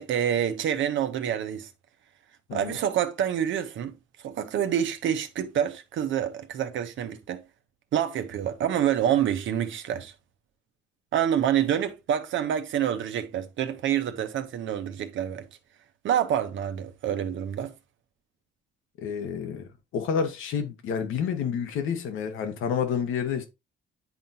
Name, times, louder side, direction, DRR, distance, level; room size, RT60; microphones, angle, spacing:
voice 1, 0.0-1.7 2.5-3.9 4.2-7.4 7.9-10.1 11.1-15.5 16.0-17.7, right 9 dB, 75° right, 1.0 m, -27 dB
voice 2, 19.0-23.5, left 7 dB, 85° left, 1.3 m, -29 dB
9.8 x 4.0 x 2.8 m
cardioid pair, 90°, 20 cm